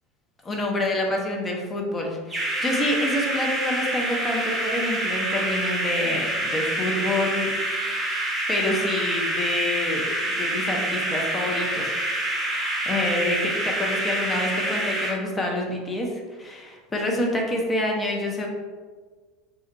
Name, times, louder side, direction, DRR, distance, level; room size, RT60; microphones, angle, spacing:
voice 1, 0.4-7.5 8.5-18.5, left 1 dB, 20° left, 0 dB, 0.7 m, -27 dB
sound 1, 2.3-15.1, right 1 dB, 20° right, 0.8 m, -27 dB
2.5 x 2.1 x 3.8 m, 1.5 s
hypercardioid pair, 80°, 0 cm